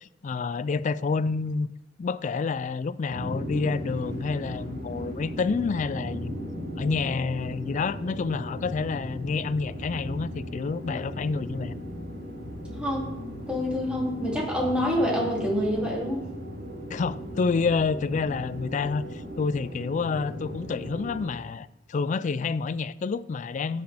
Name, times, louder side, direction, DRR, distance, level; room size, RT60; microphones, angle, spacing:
voice 1, 0.0-1.7 2.0-6.4 6.8-11.7 16.9-23.8, left 4 dB, 40° left, 0.3 m, -28 dB
sound 1, 3.1-21.3, equal, 80° right, 4.7 m, -37 dB
voice 2, 12.7-13.1 13.5-16.2, equal, 5° right, 2.8 m, -27 dB
15.0 x 8.1 x 3.5 m
head